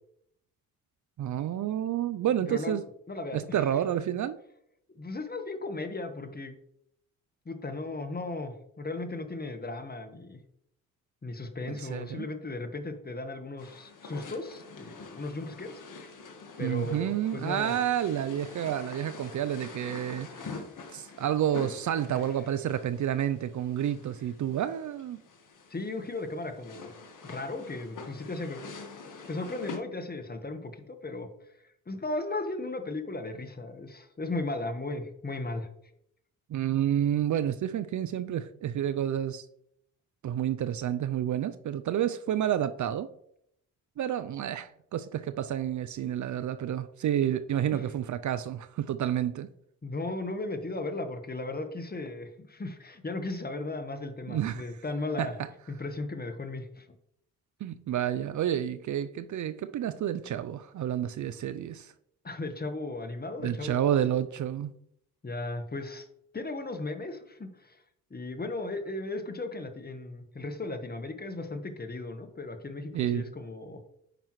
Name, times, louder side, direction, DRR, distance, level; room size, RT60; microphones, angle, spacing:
voice 1, 1.2-2.8 3.3-4.4 11.7-12.3 16.6-20.6 20.9-25.2 36.5-39.5 40.2-43.1 44.0-49.5 54.3-54.7 55.2-55.5 57.6-61.9 63.4-64.7 72.9-73.2, right 10 dB, 50° right, 0.5 m, -30 dB
voice 2, 2.5-2.8 3.1-3.4 4.9-6.5 7.4-10.4 11.2-15.8 16.6-17.7 22.0-22.2 25.7-26.9 27.2-28.6 29.3-31.3 31.9-35.7 47.7-47.8 49.8-55.3 55.7-56.9 62.2-63.9 65.2-66.1 66.3-67.8 68.1-73.8, left 2 dB, 25° left, 1.3 m, -36 dB
sound 1, 13.6-29.8, left 4 dB, 55° left, 1.6 m, -46 dB
9.1 x 5.5 x 3.1 m
supercardioid pair, 60°, 37 cm